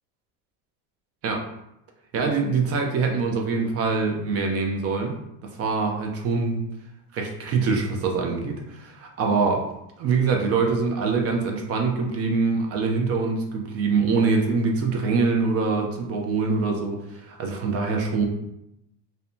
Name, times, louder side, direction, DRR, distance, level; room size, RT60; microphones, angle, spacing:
voice 1, 2.1-5.2 5.6-6.6 7.1-9.7 10.0-18.2, right 4 dB, 35° right, 2 dB, 0.4 m, -24 dB
2.6 x 2.2 x 2.5 m, 0.84 s
supercardioid pair, 125°, 44 cm